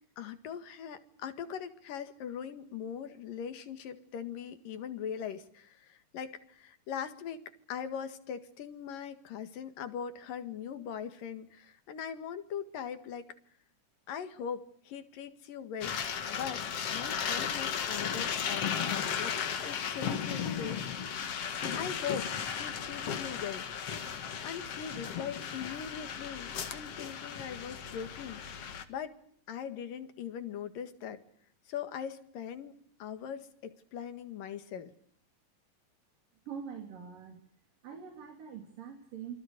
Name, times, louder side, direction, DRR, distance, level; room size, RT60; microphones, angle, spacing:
voice 1, 0.2-7.4 7.7-13.3 14.1-16.0 16.3-16.6 16.9-21.1 21.8-22.3 22.6-23.7 24.4-28.4 28.9-29.2 29.5-31.2 31.7-34.9, left 8 dB, 75° left, 10 dB, 3.5 m, -41 dB
sound 1, 15.8-28.8, left 7 dB, 50° left, 2.4 m, -35 dB
voice 2, 36.5-37.4 37.8-39.4, right 7 dB, 75° right, 5 dB, 4.5 m, -44 dB
28.0 x 24.0 x 6.7 m, 0.63 s
omnidirectional pair, 3.9 m